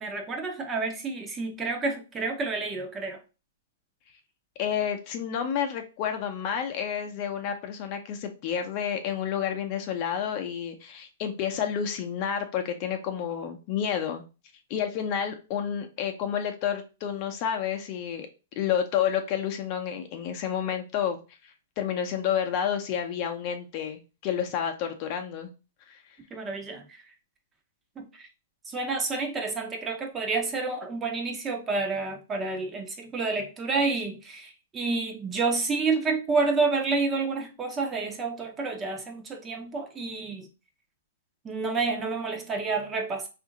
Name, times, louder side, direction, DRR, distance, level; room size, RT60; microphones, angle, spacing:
voice 1, 0.0-3.2 26.3-27.0 28.0-28.3 28.7-40.5 41.4-43.3, right 4 dB, 20° right, 0.7 m, -29 dB
voice 2, 4.6-14.2 14.7-18.3 18.6-21.2 21.4-25.5 25.9-26.0, left 8 dB, 40° left, 0.6 m, -30 dB
2.7 x 2.5 x 3.8 m
hypercardioid pair, 125°, 0 cm